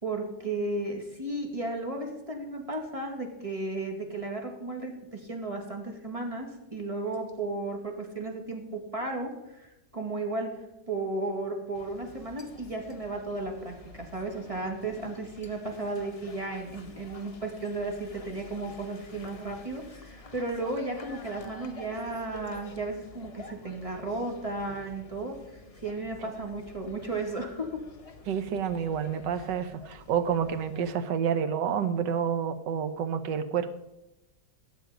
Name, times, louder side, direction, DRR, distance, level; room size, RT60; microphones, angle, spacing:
voice 1, 0.0-10.5 10.9-27.7, right 2 dB, 20° right, 2 dB, 2.1 m, -34 dB
sound 1, 11.7-30.9, left 3 dB, 25° left, 1.0 m, -49 dB
voice 2, 28.3-33.7, right 7 dB, 85° right, 11 dB, 1.5 m, -29 dB
12.5 x 8.0 x 5.1 m, 0.96 s
omnidirectional pair, 1.9 m